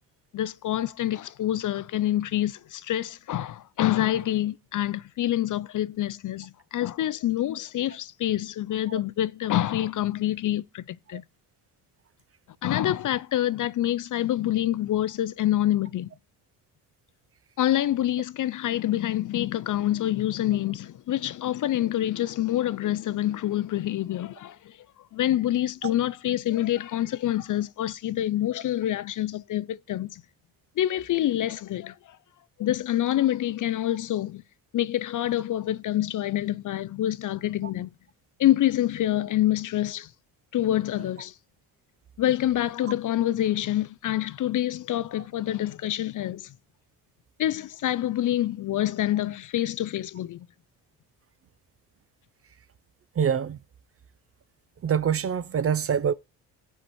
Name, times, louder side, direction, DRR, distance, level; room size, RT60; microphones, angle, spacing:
voice 1, 0.3-11.2 12.6-16.1 17.6-24.8 25.1-30.2 30.8-32.2 32.6-34.4 34.7-37.9 38.4-40.1 40.5-41.3 42.2-46.5 47.4-50.5, left 13 dB, 50° left, 0.5 m, -26 dB
voice 2, 53.2-53.6 54.8-56.1, right 7 dB, 35° right, 0.5 m, -25 dB
16.0 x 5.7 x 3.0 m
supercardioid pair, 70°, 42 cm